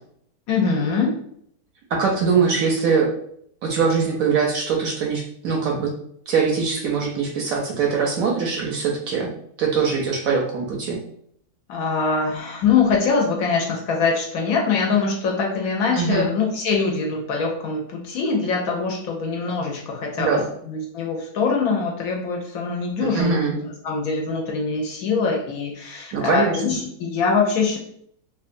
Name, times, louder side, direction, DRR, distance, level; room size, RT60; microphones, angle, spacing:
voice 1, 0.5-1.1 11.7-20.4 20.7-27.8, left 5 dB, 70° left, 0 dB, 0.9 m, -23 dB
voice 2, 1.9-3.1 3.6-5.9 6.3-9.3 9.6-11.0 15.9-16.3 20.2-20.4 23.0-23.6 26.1-26.6, right 5 dB, 70° right, 0 dB, 0.9 m, -22 dB
2.9 x 2.3 x 2.5 m, 0.67 s
omnidirectional pair, 1.7 m